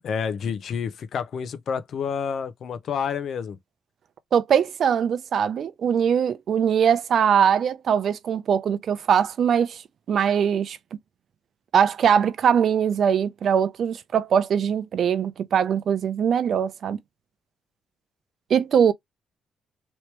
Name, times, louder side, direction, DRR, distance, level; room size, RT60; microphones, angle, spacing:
voice 1, 0.0-3.6, left 7 dB, 60° left, 0.7 m, -29 dB
voice 2, 4.3-9.8 10.1-10.8 11.7-17.0 18.5-18.9, right 8 dB, 60° right, 0.6 m, -21 dB
3.1 x 3.0 x 3.2 m
cardioid pair, 90°, 0 cm